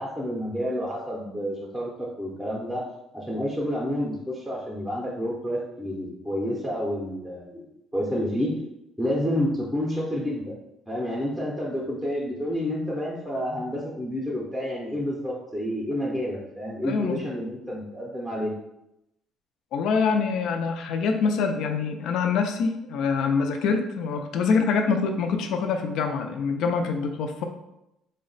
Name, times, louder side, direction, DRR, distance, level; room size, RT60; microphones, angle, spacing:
voice 1, 0.0-2.8 3.1-7.6 7.9-8.5 9.0-10.5 10.9-18.5, equal, ahead, -4 dB, 0.6 m, -29 dB
voice 2, 16.8-17.2 19.7-27.4, left 5 dB, 65° left, 5 dB, 0.4 m, -25 dB
3.9 x 2.1 x 3.8 m, 0.85 s
cardioid pair, 150°, 0 cm